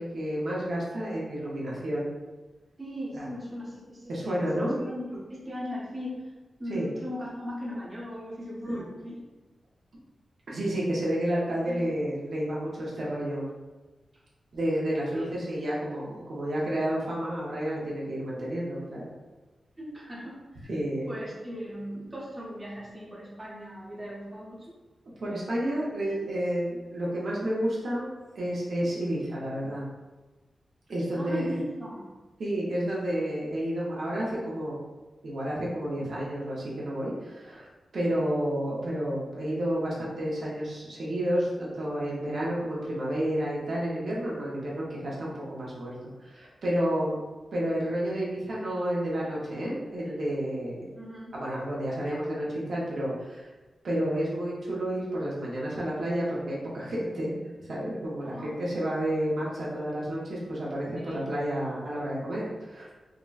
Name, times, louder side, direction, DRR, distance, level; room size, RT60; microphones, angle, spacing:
voice 1, 0.0-2.1 3.1-3.3 4.1-4.8 6.7-6.9 8.6-8.8 10.5-13.5 14.5-19.1 20.7-21.1 25.2-28.1 28.3-29.8 30.9-31.6 32.4-34.8 35.2-37.7 37.9-45.9 46.2-47.2 47.5-50.9 51.3-53.5 53.8-57.3 57.6-62.9, right 1 dB, 60° right, -6 dB, 0.6 m, -30 dB
voice 2, 2.8-6.2 6.6-9.2 11.6-11.8 15.1-15.3 19.8-20.7 21.1-24.8 31.1-32.1 51.0-51.3 58.2-58.6 61.0-61.3, equal, 20° right, -7 dB, 0.7 m, -38 dB
3.7 x 2.1 x 2.3 m, 1.2 s
wide cardioid pair, 175°, 0 cm